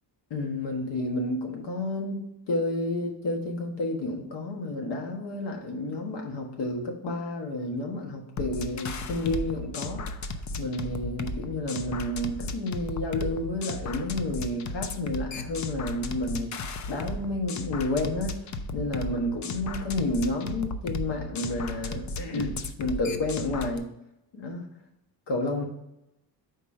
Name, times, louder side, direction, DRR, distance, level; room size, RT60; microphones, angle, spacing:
voice 1, 0.3-10.0 10.6-18.4 18.7-23.9 24.3-24.6 25.3-25.7, left 2 dB, 80° left, 1 dB, 1.5 m, -30 dB
sound 1, 8.4-23.8, left 2 dB, 45° left, 0.5 m, -35 dB
5.1 x 4.3 x 5.3 m, 0.84 s
cardioid pair, 170°, 41 cm